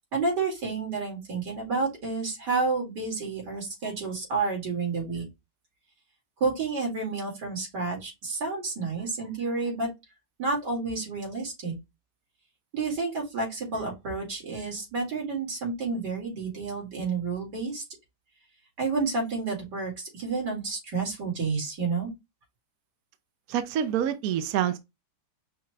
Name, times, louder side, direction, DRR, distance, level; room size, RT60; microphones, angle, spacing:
voice 1, 0.1-5.2 6.4-9.9 10.4-11.8 12.7-17.8 18.8-22.1, right 4 dB, 85° right, 3.0 m, -30 dB
voice 2, 23.5-24.8, right 9 dB, 70° right, 0.9 m, -26 dB
5.7 x 2.4 x 3.0 m
omnidirectional pair, 1.8 m